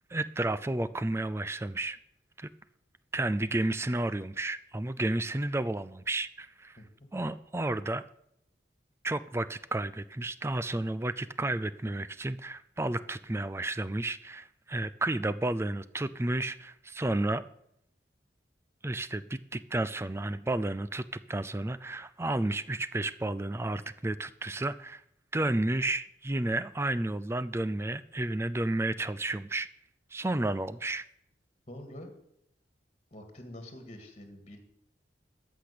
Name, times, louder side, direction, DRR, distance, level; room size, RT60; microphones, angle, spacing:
voice 1, 0.1-2.0 2.4-2.5 3.1-6.8 7.1-8.0 9.0-17.4 18.8-25.0 25.3-29.7 30.1-31.1, right 2 dB, 15° right, 15 dB, 0.4 m, -32 dB
voice 2, 31.7-32.1 33.1-34.6, left 1 dB, 35° left, 6 dB, 1.9 m, -46 dB
13.5 x 6.0 x 8.5 m, 0.74 s
head